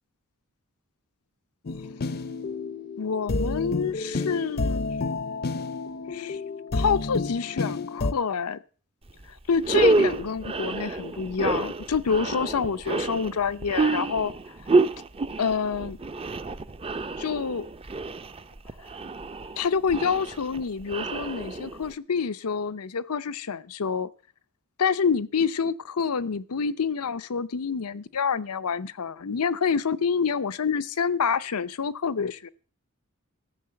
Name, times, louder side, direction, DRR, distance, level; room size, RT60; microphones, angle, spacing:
sound 1, 1.7-8.1, left 3 dB, 45° left, 0.6 m, -30 dB
voice 1, 3.0-4.9 6.1-6.4 6.7-8.6 9.3-14.3 15.4-16.0 17.2-17.7 19.6-24.1 24.8-32.5, left 6 dB, 85° left, 0.6 m, -27 dB
sound 2, 9.1-9.2 9.6-21.9, right 3 dB, 25° right, 0.6 m, -28 dB
14.0 x 6.5 x 7.7 m
head